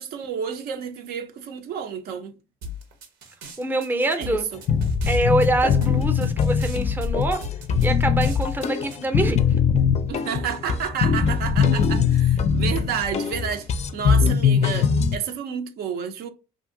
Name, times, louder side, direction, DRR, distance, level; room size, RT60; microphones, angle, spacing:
voice 1, 0.0-2.3 4.2-4.6 10.1-16.3, right 7 dB, 70° right, 0.5 m, -30 dB
sound 1, 2.6-9.0, left 3 dB, 90° right, 0.9 m, -37 dB
voice 2, 3.6-4.5 5.1-7.4 7.8-9.4, right 1 dB, 10° right, 0.5 m, -24 dB
sound 2, 4.7-15.2, left 6 dB, 40° left, 0.4 m, -21 dB
2.7 x 2.5 x 2.6 m
cardioid pair, 110°, 17 cm